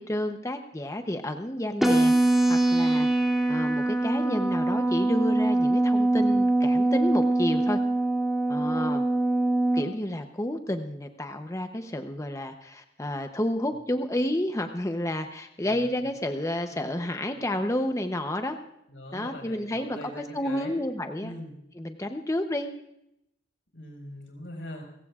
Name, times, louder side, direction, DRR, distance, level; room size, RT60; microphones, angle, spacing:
voice 1, 0.0-3.1 3.5-7.8 8.5-9.0 9.7-18.6 19.1-21.3 21.7-22.7, left 1 dB, 15° left, 6 dB, 0.7 m, -30 dB
sound 1, 1.8-9.8, right 2 dB, ahead, 2.5 m, -23 dB
voice 2, 18.9-20.7 21.2-21.6 23.7-24.8, left 1 dB, 90° left, 2 dB, 5.0 m, -42 dB
29.5 x 16.0 x 2.4 m, 0.79 s
head